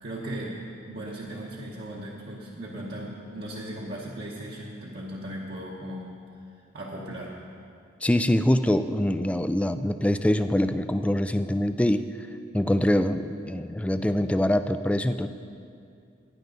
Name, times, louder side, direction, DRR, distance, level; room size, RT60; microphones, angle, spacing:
voice 1, 0.0-6.1 6.7-7.4, right 1 dB, 55° right, -5 dB, 1.2 m, -37 dB
voice 2, 8.0-12.0 12.5-15.3, left 1 dB, 5° left, 10 dB, 0.3 m, -24 dB
16.0 x 10.0 x 3.9 m, 2.4 s
head